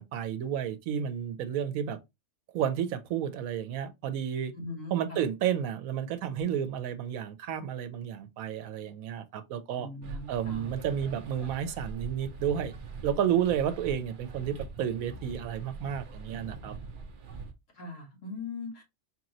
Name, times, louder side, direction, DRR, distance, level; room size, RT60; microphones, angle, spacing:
voice 1, 0.0-2.0 2.5-4.5 4.9-9.9 10.3-12.7 13.0-16.7, right 9 dB, 90° right, 1.1 m, -31 dB
voice 2, 4.5-5.2 9.8-10.7 17.7-18.8, left 3 dB, 65° left, 1.7 m, -40 dB
sound 1, 10.0-17.5, right 4 dB, 50° right, 0.7 m, -43 dB
4.2 x 3.0 x 2.6 m
omnidirectional pair, 1.4 m